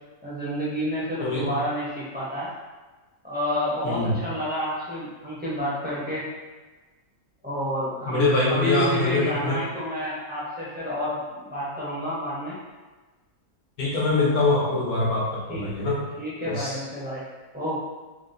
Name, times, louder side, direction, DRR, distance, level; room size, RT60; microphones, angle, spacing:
voice 1, 0.2-2.5 3.2-6.3 7.4-12.6 15.5-15.7 16.2-17.2 17.5-17.8, equal, 15° right, -9 dB, 0.3 m, -29 dB
voice 2, 3.8-4.2 8.1-9.6 13.8-16.0 16.5-16.8, left 2 dB, 75° left, -4 dB, 1.3 m, -23 dB
3.7 x 2.3 x 2.5 m, 1.3 s
omnidirectional pair, 1.6 m